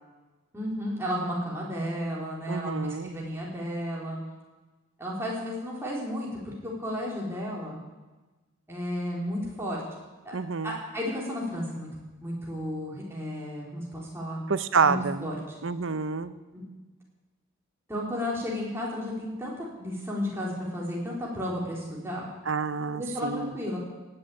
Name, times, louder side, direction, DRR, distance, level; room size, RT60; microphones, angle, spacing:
voice 1, 0.5-4.2 5.0-7.8 8.7-9.8 10.2-11.9 12.2-14.4 14.8-15.6 16.5-16.7 17.9-22.3 22.9-23.8, equal, 10° right, -5 dB, 3.9 m, -33 dB
voice 2, 2.5-3.1 10.3-10.8 14.5-15.2 15.6-16.3 22.5-23.5, right 5 dB, 60° right, 13 dB, 0.7 m, -27 dB
18.0 x 7.9 x 8.6 m, 1.2 s
head